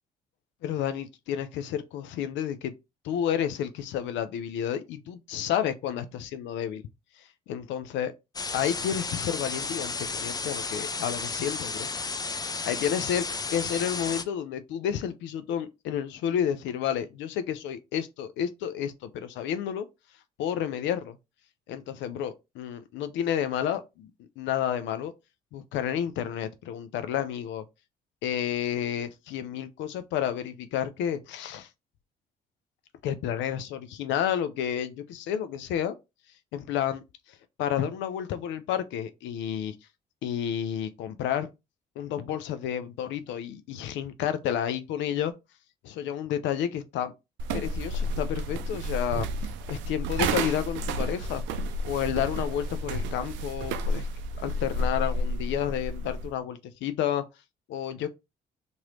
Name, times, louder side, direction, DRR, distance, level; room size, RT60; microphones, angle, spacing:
voice 1, 0.6-2.7 3.0-6.8 7.2-8.1 8.5-11.9 12.3-13.3 13.5-19.9 20.4-21.2 21.7-24.1 24.4-25.1 25.5-27.6 28.2-31.7 33.0-36.0 36.5-39.7 40.2-41.5 42.0-45.3 45.8-47.1 47.5-49.3 49.7-51.4 51.8-54.1 54.4-57.2 57.7-58.1, left 9 dB, 85° left, 0.5 m, -30 dB
sound 1, 8.3-14.2, left 4 dB, 20° left, 0.4 m, -33 dB
sound 2, 47.4-56.3, right 1 dB, 90° right, 0.4 m, -31 dB
2.9 x 2.6 x 3.1 m
supercardioid pair, 70°, 19 cm